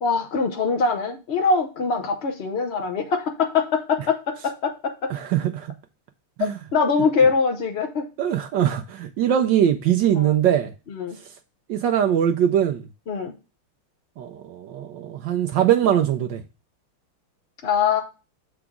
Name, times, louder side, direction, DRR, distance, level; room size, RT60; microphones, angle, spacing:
voice 1, 0.0-5.1 6.7-8.1 10.1-10.4 10.9-11.2 13.1-13.3 17.6-18.0, left 5 dB, 70° left, 0.6 m, -23 dB
voice 2, 5.1-5.7 6.4-6.5 8.2-10.7 11.7-12.8 14.2-16.4, right 10 dB, 70° right, 1.1 m, -21 dB
7.0 x 4.9 x 3.6 m
omnidirectional pair, 2.3 m